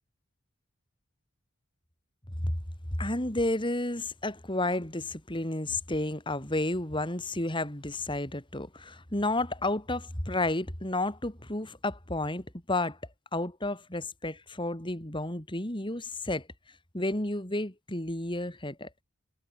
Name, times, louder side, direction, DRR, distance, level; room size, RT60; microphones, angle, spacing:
voice 1, 3.0-13.0 13.3-16.5 16.9-18.9, left 2 dB, 25° left, 3.6 m, -31 dB
head